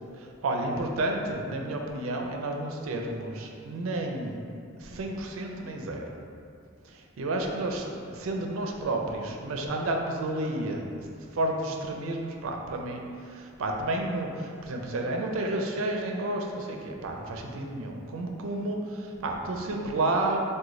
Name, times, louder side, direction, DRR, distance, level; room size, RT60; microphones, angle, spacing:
voice 1, 0.4-4.4 4.9-6.1 7.2-10.8 11.4-13.0 13.6-14.3 14.7-18.8 19.2-20.4, right 2 dB, 85° right, 2 dB, 0.4 m, -30 dB
3.1 x 2.2 x 3.7 m, 2.4 s
head